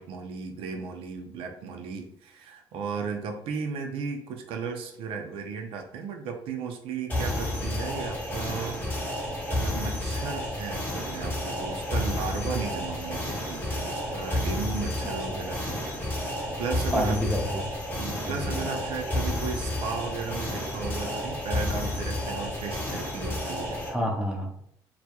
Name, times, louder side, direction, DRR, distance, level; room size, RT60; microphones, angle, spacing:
voice 1, 0.0-8.8 9.5-15.8 16.6-17.2 18.0-23.8, right 5 dB, 75° right, 4 dB, 0.4 m, -35 dB
sound 1, 7.1-23.9, left 1 dB, 20° left, 1.0 m, -31 dB
voice 2, 16.9-17.6 18.2-18.8 23.8-24.6, equal, 10° right, -1 dB, 0.6 m, -29 dB
2.3 x 2.1 x 2.8 m, 0.71 s
supercardioid pair, 80°, 10 cm